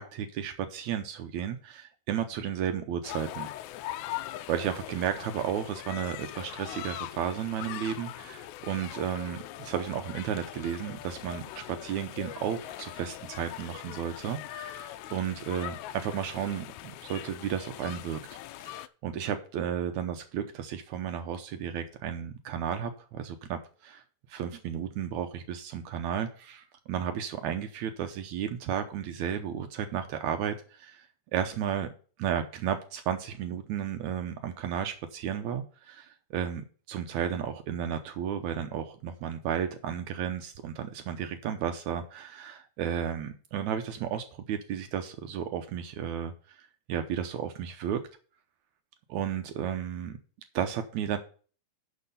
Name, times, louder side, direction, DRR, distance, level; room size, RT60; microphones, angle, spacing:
voice 1, 0.0-3.5 4.5-24.0 24.3-31.1 31.3-31.9 32.2-46.6 46.9-48.0 49.1-50.2 50.5-51.2, right 9 dB, 75° right, 1.9 m, -33 dB
sound 1, 3.0-18.9, left 14 dB, 80° left, 1.7 m, -41 dB
11.0 x 4.6 x 5.4 m
omnidirectional pair, 3.8 m